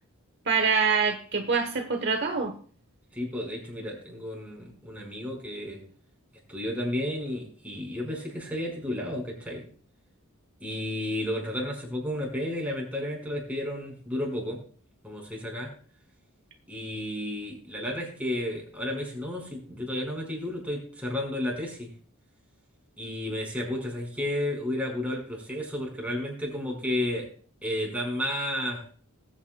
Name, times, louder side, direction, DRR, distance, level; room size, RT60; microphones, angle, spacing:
voice 1, 0.5-2.5, right 5 dB, 50° right, 5 dB, 1.1 m, -25 dB
voice 2, 3.1-5.8 6.5-9.6 10.6-14.6 15.0-15.7 16.7-21.9 23.0-27.3 27.6-28.8, left 1 dB, 5° right, -1 dB, 4.9 m, -32 dB
20.0 x 8.9 x 2.3 m, 0.43 s
head